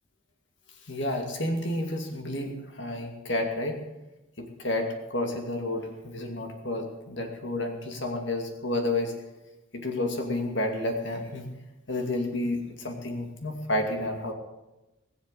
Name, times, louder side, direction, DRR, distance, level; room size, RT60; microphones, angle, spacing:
voice 1, 0.9-3.7 4.4-9.1 9.7-11.5 11.9-14.3, left 1 dB, 60° left, 3 dB, 2.5 m, -30 dB
20.5 x 7.2 x 8.2 m, 1.0 s
head